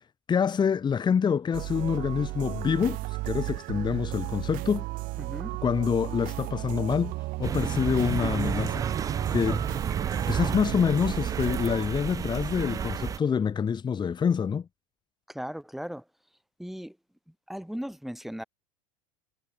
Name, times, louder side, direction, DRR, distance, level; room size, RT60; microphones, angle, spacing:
voice 1, 0.3-4.8 5.6-7.1 7.4-8.8 9.3-9.6 10.3-14.7, left 7 dB, 25° left, 1.6 m, -26 dB
sound 1, 1.5-11.9, right 21 dB, 55° right, 1.7 m, -35 dB
voice 2, 5.2-5.5 15.3-16.0 16.6-17.0 17.5-18.4, equal, ahead, 4.3 m, -37 dB
sound 2, 7.4-13.2, right 7 dB, 20° right, 0.4 m, -31 dB
hypercardioid pair, 90°, 17 cm